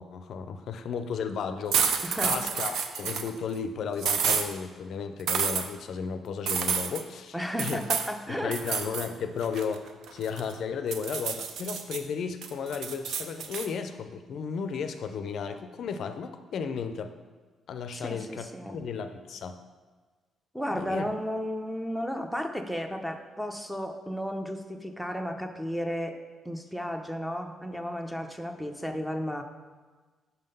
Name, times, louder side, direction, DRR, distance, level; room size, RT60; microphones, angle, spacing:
voice 1, 0.0-7.8 8.3-17.1 17.7-19.6 20.7-21.0, left 6 dB, 65° left, 8 dB, 0.4 m, -34 dB
sound 1, 1.7-3.3 4.0-4.5 5.3-5.6 6.5-7.0 7.6-8.1 8.5-9.1 9.4-10.5 10.9-12.0 12.4-13.7, right 6 dB, 75° right, 0.5 m, -29 dB
voice 2, 2.0-2.4 7.3-8.8 17.9-18.8 20.5-26.2 26.4-29.4, equal, ahead, 5 dB, 0.5 m, -33 dB
5.6 x 3.7 x 5.4 m, 1.4 s
cardioid pair, 90°, 0 cm